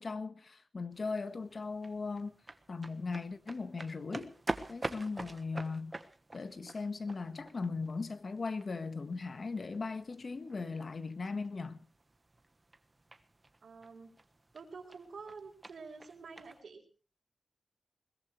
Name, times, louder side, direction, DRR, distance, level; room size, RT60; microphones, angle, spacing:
voice 1, 0.0-2.4 2.7-4.3 4.7-5.9 6.3-11.8, left 4 dB, 50° left, 1.5 m, -38 dB
sound 1, 0.9-16.6, right 2 dB, 25° right, 1.3 m, -47 dB
voice 2, 13.6-14.1 14.5-16.8, right 4 dB, 85° right, 4.0 m, -48 dB
21.5 x 21.0 x 3.2 m
wide cardioid pair, 125°, 0 cm